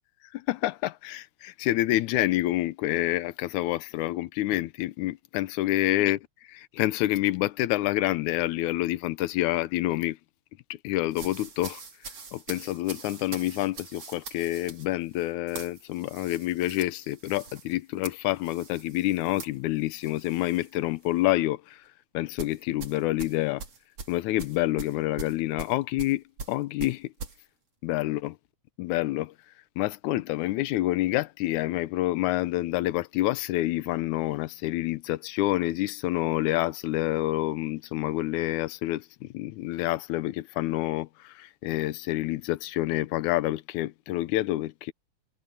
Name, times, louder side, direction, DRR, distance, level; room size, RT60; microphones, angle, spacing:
voice 1, 0.3-10.2 10.7-11.8 12.3-21.9 22.1-23.6 24.1-27.1 27.8-28.3 28.8-29.3 29.8-44.9, left 16 dB, 90° left, 2.1 m, -28 dB
sound 1, 11.1-20.7 21.0-21.3 22.4-27.4, right 4 dB, 55° right, 4.5 m, -43 dB
omnidirectional pair, 3.4 m